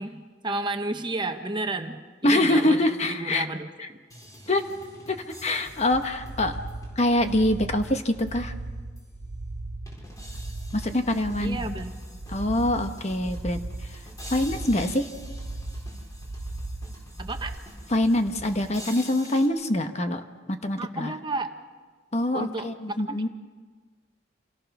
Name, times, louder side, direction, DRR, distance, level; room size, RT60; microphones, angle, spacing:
voice 1, 0.0-4.0 11.4-11.9 17.2-17.6 20.8-21.6 22.3-23.3, right 2 dB, 25° right, 6 dB, 1.1 m, -32 dB
voice 2, 2.2-3.5 4.5-4.7 5.1-6.6 7.0-8.5 10.7-11.7 12.3-13.6 14.3-15.1 17.9-20.2 20.5-21.1 22.1-23.3, left 1 dB, 35° left, 7 dB, 1.2 m, -24 dB
sound 1, 4.1-8.5 9.0-9.1 9.9-19.5, equal, 20° left, 4.5 m, -45 dB
sound 2, 5.9-17.6, right 2 dB, 60° right, 1.0 m, -37 dB
27.5 x 17.5 x 6.0 m, 1.4 s
head